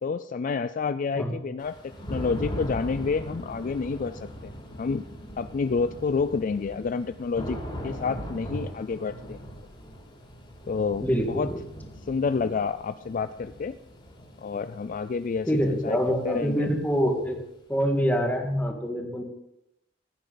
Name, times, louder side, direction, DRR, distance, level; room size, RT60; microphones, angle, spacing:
voice 1, 0.0-4.5 4.8-5.1 5.4-7.6 7.8-9.4 10.7-11.5 12.1-13.7 14.4-16.0 16.2-16.7, left 5 dB, 45° left, 12 dB, 0.4 m, -29 dB
Thunder / Rain, 1.6-17.4, equal, 30° left, 3.5 m, -40 dB
voice 2, 11.0-11.6 15.5-17.4 17.7-19.2, equal, 10° left, 2 dB, 1.8 m, -25 dB
15.5 x 9.2 x 3.9 m, 0.83 s
head